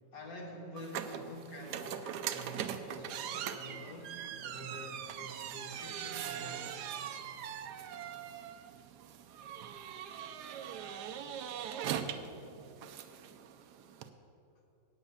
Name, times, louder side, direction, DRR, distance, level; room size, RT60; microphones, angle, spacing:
voice 1, 0.1-7.0, equal, 55° left, 0 dB, 1.9 m, -47 dB
sound 1, 0.8-14.1, right 9 dB, 75° right, 1.1 m, -41 dB
9.0 x 8.2 x 6.9 m, 2.9 s
omnidirectional pair, 1.9 m